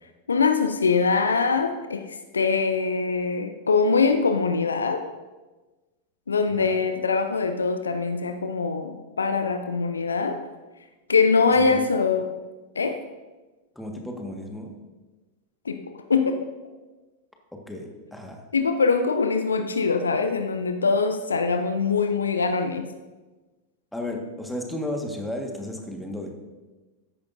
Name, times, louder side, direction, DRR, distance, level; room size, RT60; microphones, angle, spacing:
voice 1, 0.3-5.0 6.3-10.4 11.1-12.3 12.8-13.0 15.7-15.8 16.1-16.5 18.5-22.8, left 4 dB, 75° left, 8 dB, 0.7 m, -23 dB
voice 2, 13.7-14.8 17.7-18.4 23.9-26.3, left 1 dB, 5° left, 2 dB, 1.6 m, -33 dB
14.0 x 10.5 x 2.6 m, 1.2 s
figure-of-eight pair, 90°, 0 cm